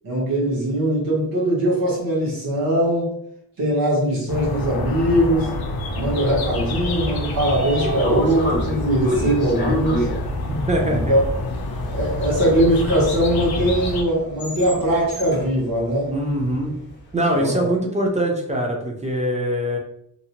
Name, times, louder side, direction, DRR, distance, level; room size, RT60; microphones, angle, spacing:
voice 1, 0.0-3.1 3.6-5.5 6.0-10.1 10.9-11.2 11.9-16.1 17.3-17.6, equal, 65° right, -6 dB, 1.0 m, -21 dB
sound 1, 4.3-14.0, left 2 dB, 75° left, 0.5 m, -27 dB
Train / Sliding door, 6.9-17.0, equal, 30° left, 0.6 m, -30 dB
voice 2, 10.5-11.1 16.1-16.7 17.1-19.8, right 1 dB, 20° right, 0 dB, 0.4 m, -23 dB
2.6 x 2.1 x 2.9 m, 0.72 s
wide cardioid pair, 155°, 37 cm